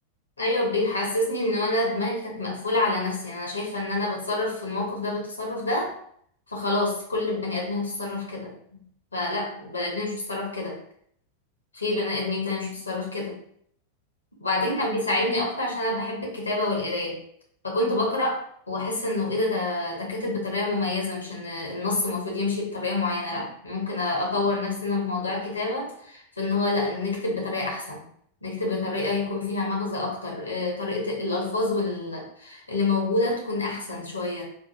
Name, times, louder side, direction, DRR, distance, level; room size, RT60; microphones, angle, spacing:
voice 1, 0.4-6.0 6.5-8.5 9.1-10.8 11.7-13.4 14.4-17.2 17.6-28.1 28.4-34.4, left 2 dB, 80° left, -1 dB, 1.0 m, -27 dB
4.4 x 2.6 x 2.6 m, 0.64 s
figure-of-eight pair, 90°, 0 cm